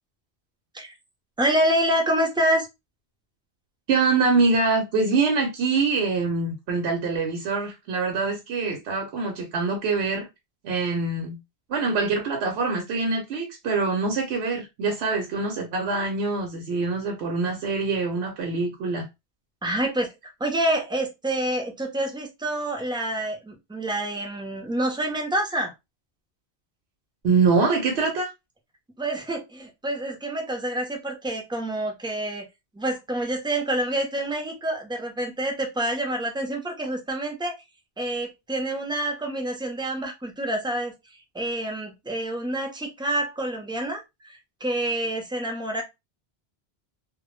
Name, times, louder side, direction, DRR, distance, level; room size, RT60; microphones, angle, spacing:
voice 1, 1.4-2.7 19.6-20.1 20.4-25.7 29.0-32.5 32.7-37.6 38.0-40.9 41.3-45.8, right 1 dB, 5° right, 0.4 m, -27 dB
voice 2, 3.9-10.3 10.6-11.4 11.7-19.0 27.2-28.3, right 4 dB, 80° right, 0.9 m, -24 dB
2.1 x 2.0 x 3.0 m
omnidirectional pair, 1.1 m